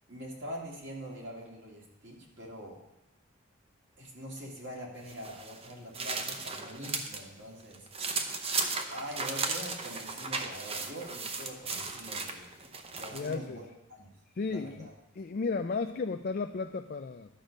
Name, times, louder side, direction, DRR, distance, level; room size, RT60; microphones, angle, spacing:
voice 1, 0.1-2.8 4.0-7.9 8.9-14.1 14.5-14.9, equal, 55° right, -2 dB, 2.2 m, -44 dB
sound 1, 5.1-7.2 7.6-13.4, right 4 dB, 30° right, 0.7 m, -36 dB
voice 2, 13.1-13.6 14.4-14.9 15.2-17.3, left 4 dB, 45° left, 6 dB, 0.4 m, -34 dB
11.5 x 6.6 x 5.1 m, 0.93 s
head